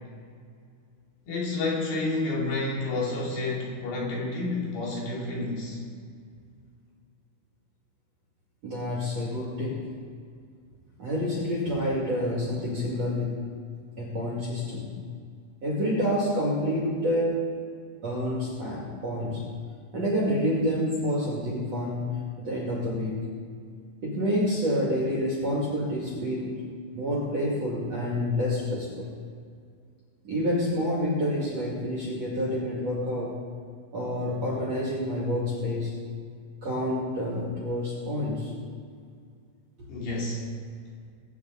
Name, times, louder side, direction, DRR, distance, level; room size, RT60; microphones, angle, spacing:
voice 1, 1.3-5.8 39.9-40.4, left 2 dB, 60° left, -4 dB, 4.4 m, -30 dB
voice 2, 8.6-9.9 11.0-13.4 14.0-15.0 15.6-17.4 18.0-19.4 19.9-23.2 24.0-26.6 26.9-29.1 30.2-33.4 33.9-36.0 36.6-38.5, equal, 40° right, -4 dB, 2.7 m, -28 dB
22.5 x 9.4 x 4.0 m, 2.2 s
omnidirectional pair, 5.7 m